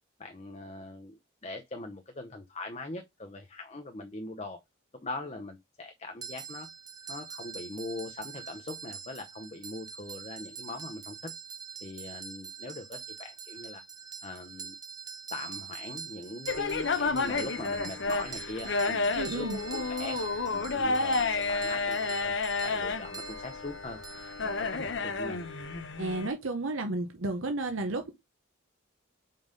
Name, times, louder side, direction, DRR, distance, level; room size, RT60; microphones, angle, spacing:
voice 1, 0.2-4.6 4.9-6.7 7.1-11.3 11.8-13.8 14.2-14.7 15.3-20.2 20.5-22.3 22.6-24.0 24.4-25.4, left 2 dB, 30° left, 0.8 m, -41 dB
sound 1, 6.2-25.0, right 6 dB, 20° right, 0.5 m, -44 dB
sound 2, 16.5-26.3, left 3 dB, 70° left, 0.8 m, -31 dB
voice 2, 19.2-19.6 26.0-28.1, right 2 dB, 90° right, 0.9 m, -32 dB
5.4 x 3.9 x 5.2 m
head